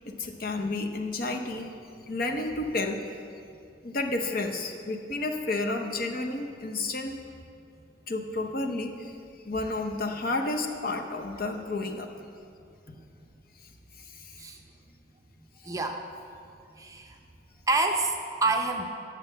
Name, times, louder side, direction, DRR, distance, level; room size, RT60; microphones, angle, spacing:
voice 1, 0.1-1.7 2.0-3.2 3.8-7.2 8.1-9.2 9.4-12.1 14.0-14.4, left 2 dB, 50° left, 4 dB, 0.8 m, -31 dB
voice 2, 15.6-16.0 16.8-17.2 17.7-18.9, right 2 dB, 15° right, 3 dB, 0.6 m, -28 dB
9.4 x 6.5 x 7.5 m, 2.5 s
head